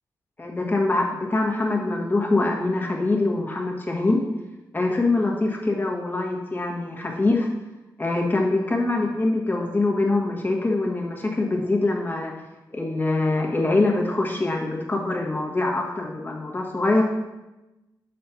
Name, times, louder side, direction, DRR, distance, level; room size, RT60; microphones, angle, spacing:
voice 1, 0.4-4.2 4.7-7.5 8.0-12.3 12.7-17.0, left 2 dB, 25° left, -1 dB, 1.4 m, -24 dB
6.6 x 4.2 x 5.8 m, 1.0 s
cardioid pair, 100°, 8 cm